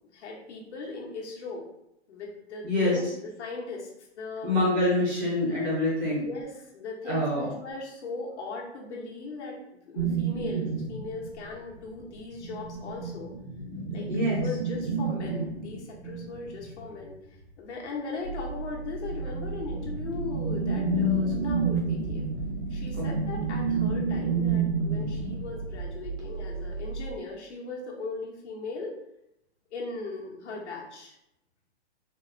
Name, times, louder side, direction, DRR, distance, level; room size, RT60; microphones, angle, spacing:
voice 1, 0.1-1.6 2.1-4.5 6.1-9.6 9.9-13.3 13.9-17.2 17.6-22.2 22.7-29.0 29.7-31.1, left 3 dB, 75° left, -2 dB, 1.1 m, -38 dB
voice 2, 2.6-3.0 4.4-6.2 7.1-7.5 14.1-14.4, left 1 dB, 20° right, -5 dB, 0.6 m, -25 dB
sound 1, 10.0-11.8 12.2-17.1 19.1-25.7, right 3 dB, 45° right, 0.9 m, -30 dB
sound 2, 18.2-27.1, right 4 dB, 85° right, 1.4 m, -36 dB
4.0 x 2.0 x 2.6 m, 0.82 s
hypercardioid pair, 165°, 35 cm